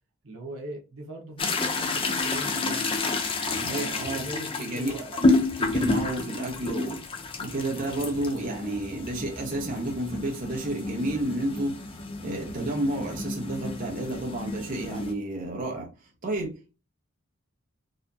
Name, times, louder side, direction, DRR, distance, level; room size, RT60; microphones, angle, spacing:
voice 1, 0.2-3.0 3.6-5.1, right 2 dB, 80° right, 1.3 m, -41 dB
sound 1, 1.4-15.1, left 2 dB, 25° left, 0.5 m, -30 dB
voice 2, 3.5-4.2 4.6-5.0 5.6-7.0 7.4-11.8 12.2-15.9 16.2-16.8, right 1 dB, 40° right, 0.9 m, -31 dB
4.1 x 2.6 x 2.7 m
head